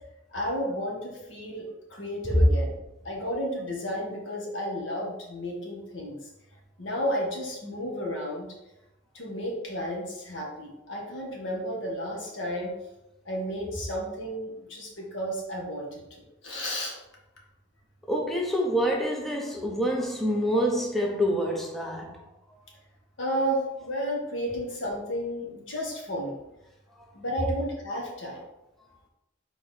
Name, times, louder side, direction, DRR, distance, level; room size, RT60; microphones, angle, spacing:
voice 1, 0.3-2.7 3.0-6.2 6.8-8.5 9.1-12.7 13.3-17.0 23.2-26.4 27.1-28.4, equal, 70° left, -2 dB, 1.9 m, -32 dB
voice 2, 18.1-22.2 22.5-22.6, equal, ahead, -1 dB, 0.8 m, -27 dB
5.1 x 4.0 x 5.6 m, 0.93 s
head